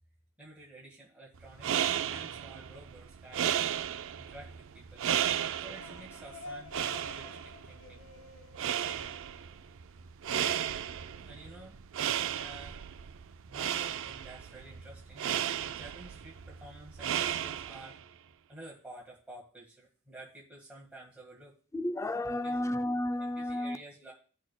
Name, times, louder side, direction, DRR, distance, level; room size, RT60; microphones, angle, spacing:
voice 1, 0.4-1.8 2.1-3.7 4.2-5.0 5.6-8.0 11.2-11.8 12.3-13.1 13.5-18.2 18.5-21.6 22.3-22.6 23.1-24.1, right 1 dB, 5° right, 1.7 m, -51 dB
sound 1, 1.4-18.0, right 10 dB, 65° right, 0.4 m, -35 dB
sound 2, 5.3-9.8, left 3 dB, 80° left, 1.2 m, -50 dB
voice 2, 21.7-23.8, left 1 dB, 15° left, 0.3 m, -32 dB
16.0 x 6.2 x 2.2 m
head